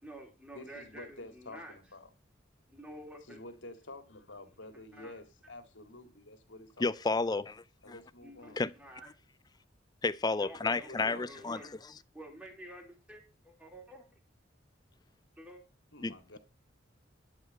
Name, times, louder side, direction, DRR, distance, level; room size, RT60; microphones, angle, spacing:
voice 1, 0.0-1.7 2.7-3.4 4.9-5.1 8.2-8.5 8.8-9.1 10.4-11.8 12.1-14.1 15.4-15.6, right 1 dB, 5° right, 3.2 m, -49 dB
voice 2, 0.5-2.1 3.3-6.9 7.2-7.3 7.8-8.6 10.6-11.6 15.9-16.4, left 2 dB, 80° left, 2.1 m, -49 dB
voice 3, 6.8-7.9 8.6-8.7 10.0-11.6 16.0-16.4, left 3 dB, 20° left, 0.5 m, -32 dB
12.0 x 4.9 x 8.1 m
head